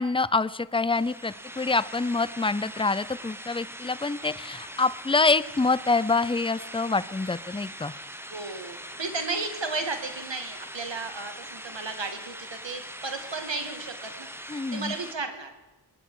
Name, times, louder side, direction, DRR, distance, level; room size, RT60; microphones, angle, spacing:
voice 1, 0.0-7.9 14.5-14.9, left 3 dB, 10° left, 17 dB, 0.4 m, -26 dB
sound 1, 0.9-15.1, right 1 dB, 5° right, 1.1 m, -42 dB
voice 2, 8.3-14.3 14.7-15.5, right 3 dB, 70° right, 6 dB, 1.9 m, -34 dB
23.5 x 10.0 x 4.8 m, 1.1 s
wide cardioid pair, 45°, 46 cm